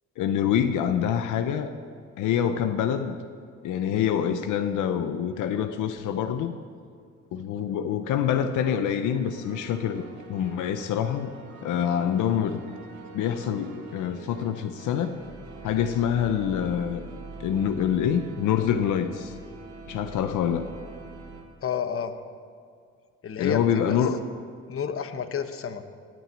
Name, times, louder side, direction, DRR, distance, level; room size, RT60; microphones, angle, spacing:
voice 1, 0.2-1.7 2.2-3.2 3.6-6.5 7.3-11.3 11.6-12.6 13.1-15.1 15.6-17.0 17.4-19.3 19.9-20.7 23.4-24.2, left 9 dB, 85° left, 9 dB, 0.8 m, -26 dB
sound 1, 9.0-21.4, right 3 dB, 70° right, 2.4 m, -44 dB
voice 2, 21.6-22.1 23.2-24.0 24.7-25.8, left 7 dB, 45° left, 9 dB, 1.1 m, -30 dB
17.5 x 6.2 x 8.7 m, 2.1 s
cardioid pair, 90°, 30 cm